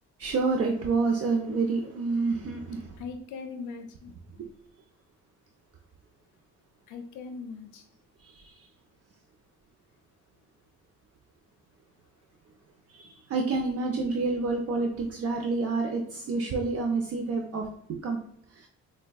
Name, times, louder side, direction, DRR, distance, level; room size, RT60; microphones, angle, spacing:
voice 1, 0.2-3.0 4.4-4.5 8.2-8.7 12.9-18.2 18.5-18.7, right 3 dB, 55° right, 0.5 m, -28 dB
voice 2, 3.0-4.1 6.9-7.8, left 4 dB, 80° left, 0.5 m, -40 dB
4.3 x 2.2 x 2.3 m
cardioid pair, 90°, 30 cm